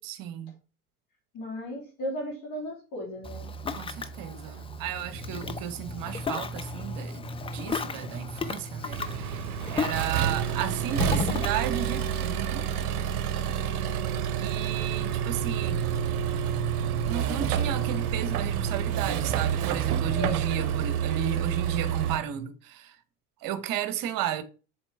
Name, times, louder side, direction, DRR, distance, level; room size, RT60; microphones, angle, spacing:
voice 1, 0.0-0.6 3.7-12.7 14.4-15.8 17.0-23.0 23.4-24.4, right 10 dB, 45° right, 1.0 m, -34 dB
voice 2, 1.3-3.5 20.1-20.4, equal, 45° left, 2.8 m, -35 dB
Ocean, 3.2-12.3, left 5 dB, 15° left, 0.5 m, -36 dB
sound 1, 3.2-21.1, right 2 dB, 25° right, 2.8 m, -42 dB
Accelerating revving vroom, 8.9-22.2, right 9 dB, 70° right, 0.7 m, -28 dB
7.3 x 4.0 x 3.3 m
figure-of-eight pair, 60°, 45 cm